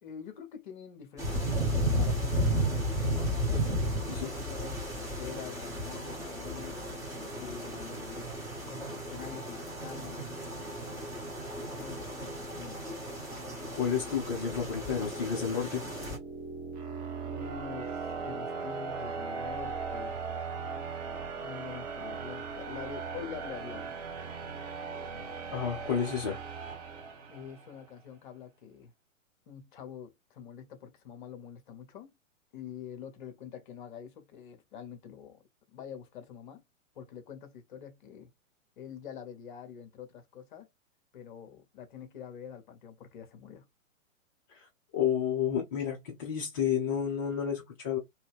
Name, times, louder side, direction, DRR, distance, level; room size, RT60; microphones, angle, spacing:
voice 1, 0.0-6.8 7.3-8.3 8.7-10.4 11.7-12.9 17.2-20.2 21.4-24.0 27.3-28.9 29.5-32.1 32.5-35.4 35.7-36.6 36.9-38.3 38.8-40.7 41.1-43.7, left 8 dB, 40° left, 1.0 m, -46 dB
sound 1, 1.2-16.2, equal, 10° right, 1.3 m, -34 dB
voice 2, 13.7-15.8 25.5-26.4 44.5-44.7 44.9-48.0, left 8 dB, 15° left, 0.4 m, -31 dB
sound 2, 14.9-27.8, right 5 dB, 30° right, 1.0 m, -39 dB
3.1 x 2.7 x 3.3 m
figure-of-eight pair, 115°, 40 cm